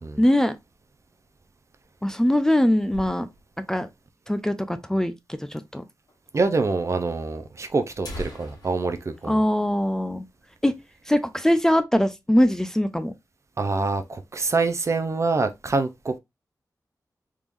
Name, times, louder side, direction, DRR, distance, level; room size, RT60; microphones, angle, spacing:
voice 1, 0.2-0.6 2.0-3.3 3.7-3.9 4.3-5.8 9.3-10.2 10.6-10.7 11.1-13.1, left 1 dB, 10° left, 0.4 m, -22 dB
sound 1, 1.8-3.7 4.0-4.1 4.3-4.4 5.1-5.2 6.1-6.2 6.5-6.6 7.4-7.5 7.8-10.4 10.7-10.9 11.3-11.5 11.9-12.5, equal, 85° left, 1.5 m, -42 dB
voice 2, 6.3-9.4 13.6-16.2, right 3 dB, 45° right, 0.5 m, -25 dB
3.6 x 3.1 x 2.5 m
wide cardioid pair, 90°, 7 cm